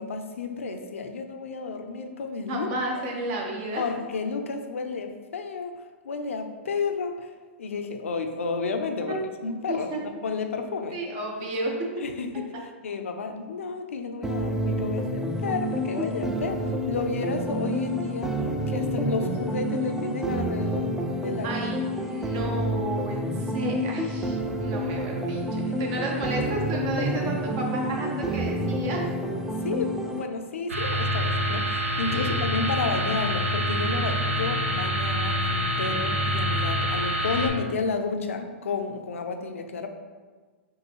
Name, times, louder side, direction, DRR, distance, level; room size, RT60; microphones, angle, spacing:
voice 1, 0.0-2.7 3.8-5.7 6.0-7.3 7.6-9.9 10.2-11.0 12.0-12.5 12.8-18.3 18.7-21.5 29.5-39.9, left 4 dB, 85° left, 6 dB, 0.5 m, -31 dB
voice 2, 2.5-3.8 9.1-9.2 9.7-10.0 10.9-11.7 21.4-29.0 32.1-32.4, right 1 dB, 45° right, -1 dB, 0.9 m, -32 dB
sound 1, 14.2-30.2, equal, 5° right, 0.4 m, -29 dB
sound 2, 30.7-37.5, equal, 85° right, 0.9 m, -26 dB
5.4 x 2.6 x 2.9 m, 1.4 s
hypercardioid pair, 120°, 7 cm